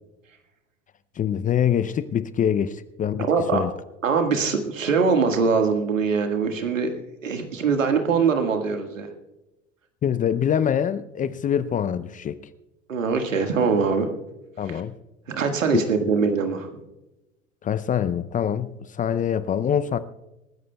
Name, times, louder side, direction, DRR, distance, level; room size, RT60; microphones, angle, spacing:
voice 1, 1.2-3.3 3.5-3.7 10.0-12.4 14.6-14.9 15.7-15.8 17.6-20.0, left 9 dB, 20° left, 0.5 m, -24 dB
voice 2, 3.2-3.6 4.0-6.9 7.2-9.1 12.9-14.1 14.7-14.8 15.3-16.7, right 5 dB, 85° right, 1.8 m, -22 dB
27.5 x 14.0 x 2.3 m
hypercardioid pair, 85°, 38 cm